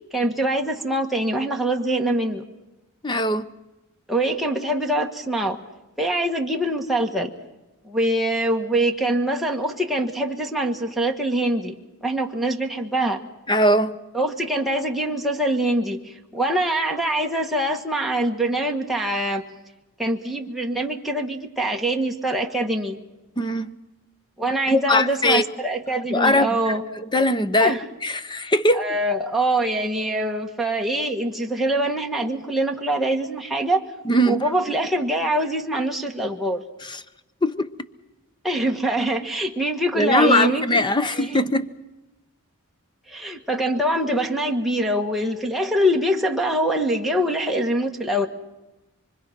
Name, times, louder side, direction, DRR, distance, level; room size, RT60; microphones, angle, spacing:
voice 1, 0.1-2.4 4.1-5.6 6.0-7.3 7.8-13.2 14.1-19.5 20.0-23.0 24.4-26.8 27.6-27.8 28.7-33.8 34.2-36.6 38.4-41.4 43.1-48.3, right 1 dB, ahead, 1.5 m, -24 dB
voice 2, 3.0-3.5 13.5-13.9 23.4-23.8 24.7-25.4 26.1-28.9 34.0-34.4 36.8-37.0 37.4-37.7 40.0-41.7, left 1 dB, 20° left, 0.8 m, -21 dB
25.0 x 24.5 x 6.0 m
head